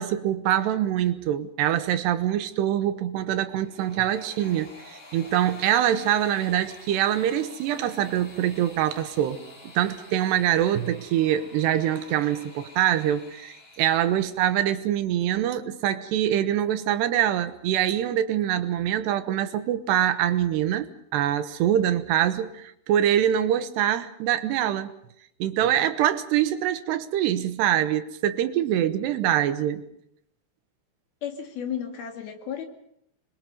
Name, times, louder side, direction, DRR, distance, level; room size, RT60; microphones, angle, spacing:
voice 1, 0.0-4.7 5.1-9.4 9.8-24.9 25.4-29.8, right 11 dB, 90° right, 3.3 m, -24 dB
sound 1, 3.4-14.5, left 2 dB, 45° left, 5.4 m, -48 dB
voice 2, 31.2-32.6, left 8 dB, 65° left, 4.1 m, -33 dB
26.5 x 23.0 x 5.4 m
omnidirectional pair, 4.8 m